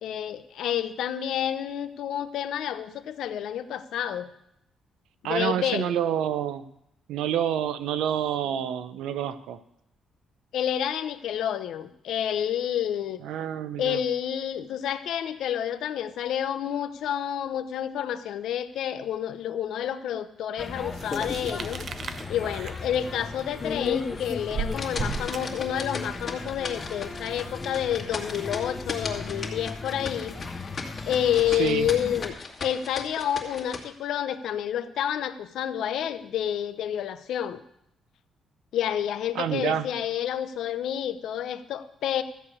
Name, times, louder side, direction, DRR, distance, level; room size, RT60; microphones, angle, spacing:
voice 1, 0.0-4.3 5.2-5.9 8.4-8.6 10.5-13.2 13.8-21.8 22.3-30.4 31.1-32.3 32.6-37.6 38.7-42.2, left 10 dB, 75° left, 11 dB, 0.8 m, -29 dB
voice 2, 5.2-6.7 7.1-9.6 13.2-14.0 31.5-31.9 39.3-39.9, right 10 dB, 85° right, 12 dB, 0.7 m, -28 dB
sound 1, 20.6-32.3, left 3 dB, 25° left, 1.2 m, -37 dB
sound 2, 20.9-26.1, right 5 dB, 55° right, 0.8 m, -37 dB
sound 3, 21.0-21.7 22.1-22.2 22.7-22.8 23.4-33.8, left 4 dB, 45° left, 2.1 m, -36 dB
13.5 x 4.9 x 8.6 m, 0.77 s
cardioid pair, 90°, 0 cm